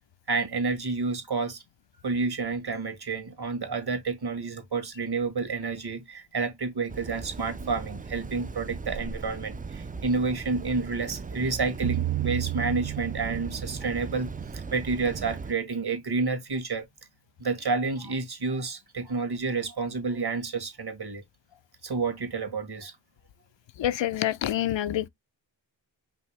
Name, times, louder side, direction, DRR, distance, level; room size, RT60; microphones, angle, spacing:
voice 1, 0.3-1.6 2.0-16.8 17.4-21.2 21.8-22.9, right 4 dB, 55° right, 1.7 m, -30 dB
sound 1, 6.9-15.5, right 4 dB, 20° right, 0.3 m, -39 dB
sound 2, 11.8-14.9, right 16 dB, 85° right, 0.7 m, -33 dB
voice 2, 23.8-25.1, left 12 dB, 80° left, 0.6 m, -27 dB
5.5 x 2.8 x 3.3 m
cardioid pair, 65°, 45 cm